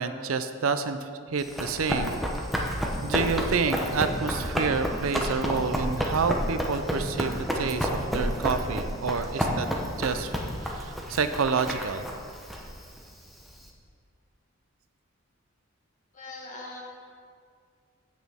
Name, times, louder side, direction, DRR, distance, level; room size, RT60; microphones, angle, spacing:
voice 1, 0.0-2.2 3.0-9.7 10.0-10.3 10.6-12.0, right 5 dB, 75° right, 10 dB, 0.5 m, -28 dB
Run, 1.4-13.7, equal, ahead, 0.8 m, -30 dB
voice 2, 16.1-16.8, left 2 dB, 35° left, -3 dB, 1.7 m, -41 dB
16.0 x 6.1 x 3.5 m, 2.2 s
head